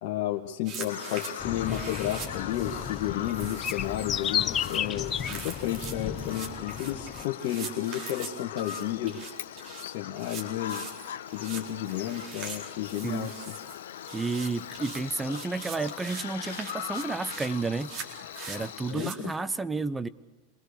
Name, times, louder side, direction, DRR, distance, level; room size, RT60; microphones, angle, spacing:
voice 1, 0.0-9.3 9.8-10.9 11.3-13.4 18.9-19.3, left 12 dB, 65° left, 1 dB, 1.6 m, -32 dB
sound 1, 0.6-19.1, right 5 dB, 50° right, 4.3 m, -43 dB
Bird vocalization bird call bird song, 0.9-18.9, left 10 dB, 85° left, 1.3 m, -40 dB
sound 2, 1.4-7.2, left 9 dB, 35° left, 0.8 m, -33 dB
voice 2, 13.0-13.3 14.1-17.9 18.5-20.1, right 3 dB, 15° right, 15 dB, 0.9 m, -31 dB
27.5 x 20.5 x 6.7 m, 1.2 s
hypercardioid pair, 105°, 0 cm